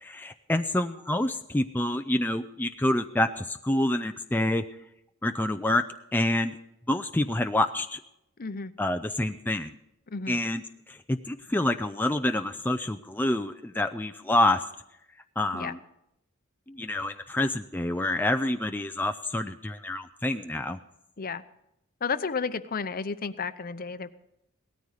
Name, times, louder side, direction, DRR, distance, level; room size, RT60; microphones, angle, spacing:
voice 1, 0.0-4.6 5.2-5.9 6.1-6.6 6.9-8.0 8.8-9.7 10.3-10.6 10.9-14.6 15.4-15.8 16.7-20.8, left 1 dB, 10° left, 7 dB, 0.4 m, -27 dB
voice 2, 8.4-8.7 10.1-10.4 15.5-15.7 21.2-21.4 22.0-24.2, left 5 dB, 45° left, 12 dB, 0.7 m, -32 dB
18.0 x 13.5 x 4.9 m, 0.82 s
head